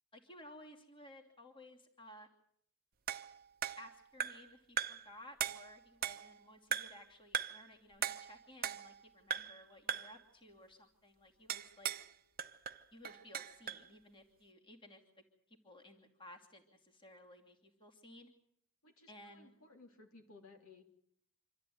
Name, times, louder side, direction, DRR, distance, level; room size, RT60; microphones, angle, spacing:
voice 1, 0.1-2.3 3.8-11.9 12.9-15.0 15.5-18.3 19.1-19.5, left 1 dB, 25° left, 1 dB, 2.8 m, -57 dB
sound 1, 3.1-4.5 4.8-5.1 5.4-6.4 6.7-7.0 7.3-7.7 8.0-9.0 9.3-9.6 9.9-10.2 11.5-12.1 12.4-13.9, right 8 dB, 40° right, 0.8 m, -39 dB
voice 2, 18.8-20.8, left 3 dB, 70° left, 3 dB, 3.2 m, -59 dB
26.5 x 13.5 x 9.3 m, 0.69 s
head